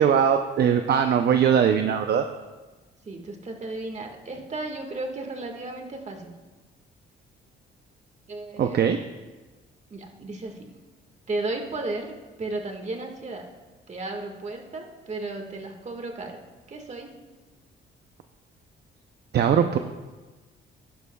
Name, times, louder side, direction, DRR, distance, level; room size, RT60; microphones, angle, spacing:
voice 1, 0.0-2.3 8.6-9.0 19.3-19.8, right 8 dB, 55° right, 7 dB, 0.6 m, -20 dB
voice 2, 3.1-6.3 8.3-8.8 9.9-10.7 11.3-13.5 13.9-16.4 16.7-17.2, right 2 dB, 35° right, 3 dB, 1.7 m, -34 dB
16.0 x 11.0 x 2.3 m, 1.2 s
cardioid pair, 90°, 20 cm